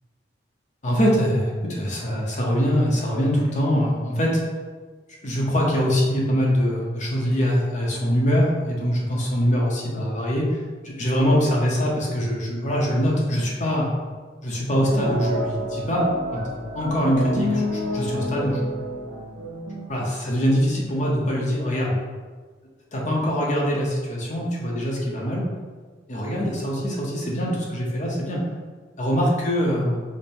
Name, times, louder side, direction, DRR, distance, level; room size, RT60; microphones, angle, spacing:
voice 1, 0.8-4.4 5.2-10.4 10.8-13.9 14.4-16.1 16.3-16.4 16.7-18.7 19.9-22.0 22.9-25.4 26.1-28.4 29.0-30.0, equal, 40° left, -3 dB, 0.8 m, -23 dB
sound 1, 14.8-19.9, equal, 90° right, 1.0 m, -28 dB
5.2 x 2.1 x 4.4 m, 1.4 s
head